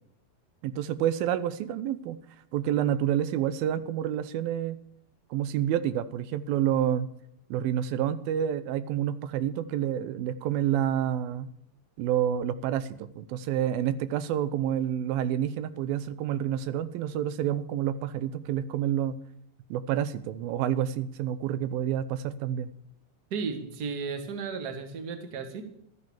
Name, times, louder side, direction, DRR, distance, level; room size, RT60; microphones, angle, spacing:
voice 1, 0.6-2.2 2.5-4.8 5.3-7.1 7.5-11.5 12.0-12.9 13.2-19.2 19.7-22.7, right 10 dB, 90° right, 14 dB, 2.6 m, -28 dB
voice 2, 23.3-25.6, right 5 dB, 40° right, 6 dB, 1.6 m, -34 dB
13.0 x 9.6 x 7.2 m, 0.72 s
omnidirectional pair, 4.1 m